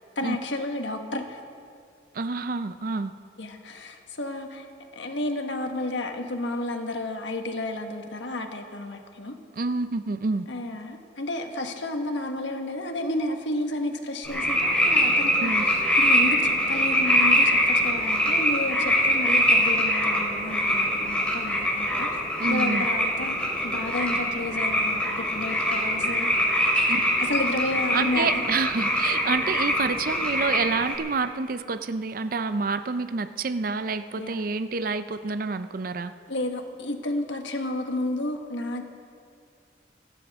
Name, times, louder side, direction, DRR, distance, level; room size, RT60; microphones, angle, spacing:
voice 1, 0.1-1.4 3.4-4.6 4.9-9.4 10.5-22.1 22.5-26.3 26.7-26.9 27.2-28.4 34.1-34.4 36.3-38.9, left 1 dB, 90° left, 4 dB, 1.5 m, -31 dB
voice 2, 2.1-3.1 9.6-10.4 15.4-15.6 22.4-22.9 26.9-27.0 27.9-36.1, right 4 dB, 50° right, 11 dB, 0.5 m, -28 dB
sound 1, 14.2-31.0, equal, 5° left, 3.0 m, -23 dB
26.0 x 12.0 x 3.6 m, 2.3 s
head